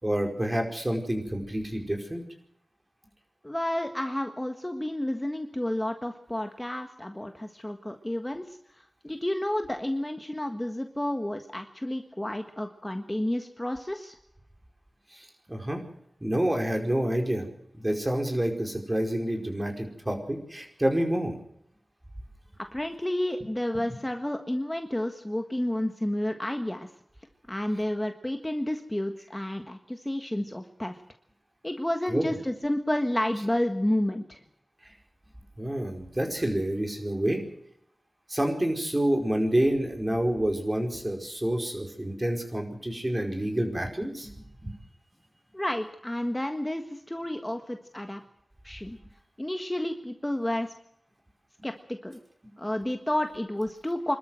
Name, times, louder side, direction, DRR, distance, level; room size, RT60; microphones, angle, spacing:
voice 1, 0.0-2.2 15.1-15.8 16.2-17.5 17.7-21.3 32.1-32.3 35.6-37.4 38.3-44.7, right 1 dB, 25° right, 3 dB, 5.0 m, -28 dB
voice 2, 3.4-14.1 22.7-26.9 27.5-31.0 31.6-34.4 45.5-48.2 48.6-49.0 49.4-50.7 51.6-52.2 52.6-54.2, left 1 dB, 15° left, 5 dB, 1.6 m, -31 dB
25.5 x 13.0 x 7.7 m, 0.73 s
wide cardioid pair, 60°, 0 cm